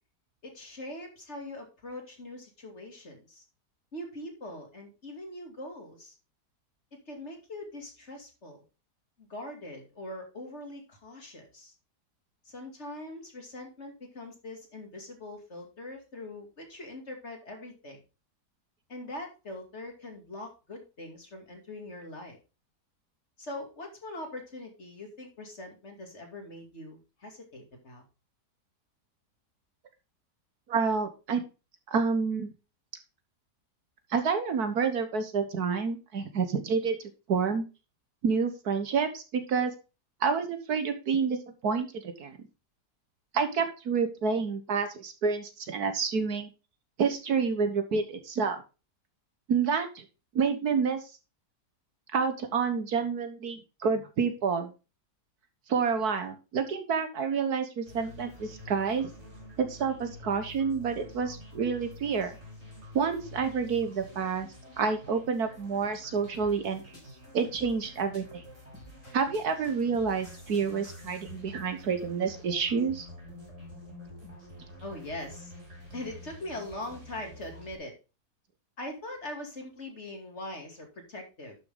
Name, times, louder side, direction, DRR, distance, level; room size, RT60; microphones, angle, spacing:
voice 1, 0.4-3.4 3.9-6.1 7.1-8.6 9.2-11.7 12.5-18.0 18.9-22.4 23.4-28.0 74.8-75.5 75.9-77.9 78.8-81.6, left 1 dB, 40° left, 3 dB, 2.7 m, -42 dB
voice 2, 30.7-31.4 31.9-32.5 34.1-37.0 37.3-37.6 38.2-39.7 40.2-41.4 41.6-42.4 43.3-46.5 47.0-48.6 49.5-50.0 50.3-51.0 52.1-54.7 55.7-59.1 59.6-62.3 62.9-64.5 64.8-66.8 67.3-68.4 69.1-73.1, right 5 dB, 65° right, 8 dB, 1.7 m, -28 dB
sound 1, 57.8-77.8, left 1 dB, 45° right, 4.3 m, -48 dB
sound 2, 66.3-71.4, left 1 dB, 75° left, 5.4 m, -53 dB
11.5 x 6.5 x 3.7 m, 0.30 s
omnidirectional pair, 1.8 m